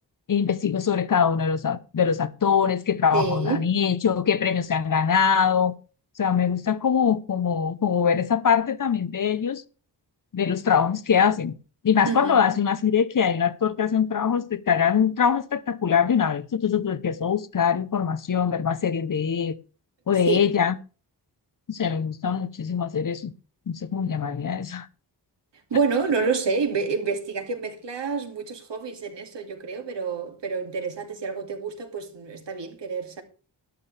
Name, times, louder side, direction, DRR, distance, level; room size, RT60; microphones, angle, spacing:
voice 1, 0.3-5.7 6.2-9.6 10.3-11.5 11.8-19.5 20.1-20.8 21.7-23.3 23.7-24.9, left 7 dB, 50° left, 0.8 m, -23 dB
voice 2, 3.1-3.6 12.0-12.4 20.3-20.5 25.7-33.2, right 5 dB, 85° right, 2.3 m, -28 dB
12.5 x 12.0 x 3.3 m
wide cardioid pair, 110°, 42 cm